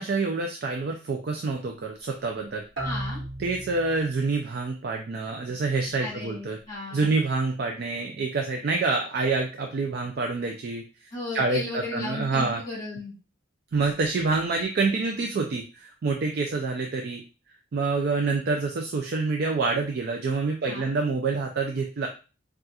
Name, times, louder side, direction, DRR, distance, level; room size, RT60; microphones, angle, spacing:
voice 1, 0.0-2.6 3.4-6.6 6.9-10.8 11.3-12.6 13.7-17.2 17.7-22.1, right 3 dB, 50° right, 3 dB, 0.3 m, -27 dB
voice 2, 2.8-3.2 6.0-7.2 11.1-13.1 20.7-20.9, left 2 dB, 20° left, -5 dB, 1.5 m, -35 dB
sound 1, 2.8-4.4, right 1 dB, 70° right, 1.1 m, -35 dB
4.1 x 2.4 x 2.3 m, 0.33 s
head